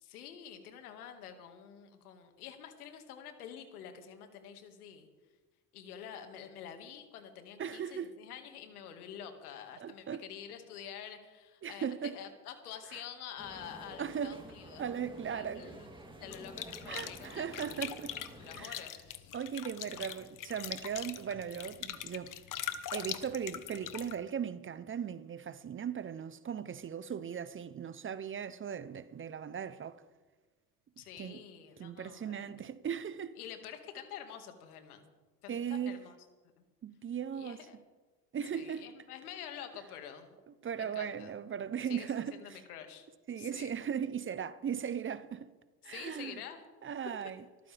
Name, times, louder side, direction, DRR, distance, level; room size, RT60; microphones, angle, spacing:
voice 1, 0.0-5.1 5.7-14.9 15.3-15.9 16.2-17.5 18.2-19.4 19.9-20.1 31.0-32.5 33.4-35.1 35.4-36.1 37.3-37.8 38.5-40.4 40.8-41.4 41.9-43.1 43.4-43.7 45.8-46.6, left 9 dB, 85° left, 2.2 m, -48 dB
voice 2, 7.6-8.1 9.8-10.2 11.6-12.2 12.9-13.0 14.0-14.4 14.8-15.8 16.9-18.2 18.6-18.9 19.3-22.3 22.9-30.0 31.2-31.4 31.8-33.4 35.5-36.0 36.8-37.7 38.3-38.9 40.5-42.6 43.3-45.5 45.8-46.4 46.8-47.4, right 8 dB, 30° right, 0.8 m, -38 dB
sound 1, 13.4-18.6, right 1 dB, 10° right, 3.2 m, -50 dB
sound 2, 16.3-24.1, left 11 dB, 45° left, 1.4 m, -42 dB
24.0 x 14.0 x 3.5 m
hypercardioid pair, 75°, 44 cm